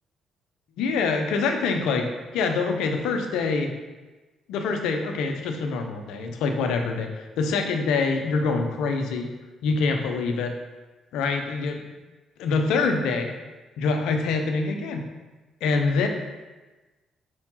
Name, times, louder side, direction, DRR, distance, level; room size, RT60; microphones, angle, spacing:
voice 1, 0.8-3.7 4.5-9.3 9.6-10.5 11.1-11.8 12.4-13.3 13.8-15.0 15.6-16.1, left 4 dB, 75° left, 4 dB, 0.8 m, -25 dB
4.8 x 4.4 x 5.6 m, 1.2 s
hypercardioid pair, 55°, 0 cm